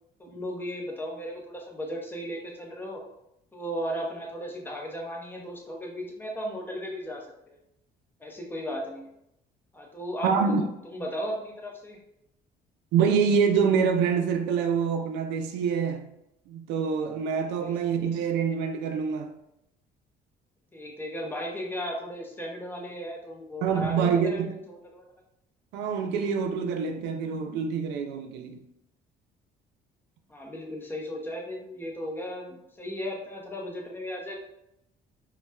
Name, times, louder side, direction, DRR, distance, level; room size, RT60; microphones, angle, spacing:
voice 1, 0.2-3.0 3.5-7.6 8.2-9.1 9.7-10.6 10.8-12.0 17.6-17.8 20.7-25.0 30.3-34.4, equal, 10° left, 0.7 m, -36 dB
voice 2, 10.2-10.6 12.9-16.1 16.5-19.3 23.6-24.6 25.7-28.6, right 6 dB, 90° right, 0.4 m, -26 dB
4.0 x 2.2 x 2.2 m
cardioid pair, 110°, 17 cm